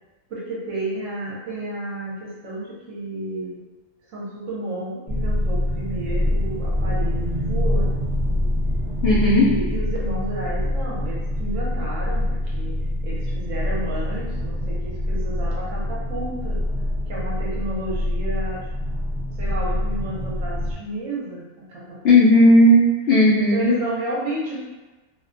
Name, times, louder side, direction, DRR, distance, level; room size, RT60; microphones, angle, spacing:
voice 1, 0.3-3.6 4.1-8.1 9.1-12.8 13.0-16.6 17.0-18.7 19.4-22.0 23.5-24.6, right 1 dB, 65° right, -5 dB, 0.9 m, -31 dB
sound 1, 5.1-20.7, left 1 dB, 45° right, 0.7 m, -25 dB
voice 2, 9.0-9.5 22.0-23.8, left 1 dB, 75° left, -7 dB, 0.5 m, -14 dB
2.5 x 2.2 x 2.4 m, 1.2 s
omnidirectional pair, 1.6 m